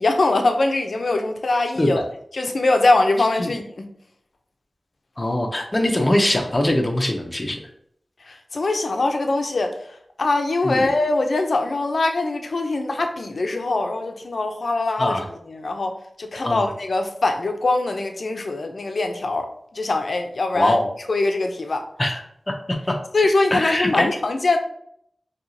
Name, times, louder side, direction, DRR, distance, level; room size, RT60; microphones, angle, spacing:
voice 1, 0.0-2.0 2.3-3.8 8.2-15.2 15.5-20.8 21.1-21.9 23.1-24.6, left 2 dB, 70° left, 0.6 m, -22 dB
voice 2, 5.2-7.6 10.6-10.9 15.0-15.2 16.4-16.6 20.6-20.9 22.0-22.2 22.5-22.6 22.9-23.0 23.5-24.1, left 1 dB, 30° left, 0.7 m, -22 dB
4.5 x 2.9 x 2.7 m
wide cardioid pair, 60°, 0 cm